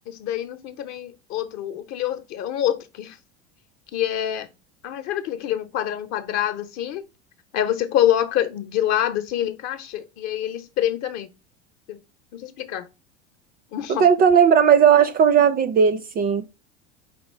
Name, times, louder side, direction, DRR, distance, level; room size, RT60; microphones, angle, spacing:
voice 1, 0.1-3.2 3.9-4.5 4.8-7.0 7.5-11.3 11.9-12.0 12.3-12.9 13.7-14.0, left 11 dB, 50° left, 0.8 m, -26 dB
voice 2, 13.9-16.4, right 7 dB, 25° right, 0.4 m, -16 dB
4.4 x 2.8 x 4.3 m
hypercardioid pair, 80°, 36 cm